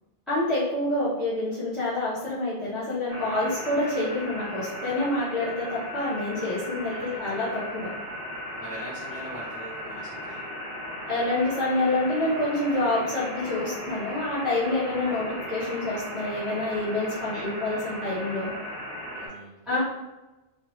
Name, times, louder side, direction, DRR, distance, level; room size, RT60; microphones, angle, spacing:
voice 1, 0.3-7.9 11.1-18.5 19.7-19.8, left 2 dB, ahead, -13 dB, 0.8 m, -27 dB
sound 1, 3.1-19.3, equal, 25° left, 1.4 m, -37 dB
voice 2, 6.9-7.3 8.5-10.5 14.9-15.2 17.3-17.9 19.1-19.8, equal, 65° left, -7 dB, 0.9 m, -43 dB
3.0 x 2.1 x 3.0 m, 1.1 s
omnidirectional pair, 1.1 m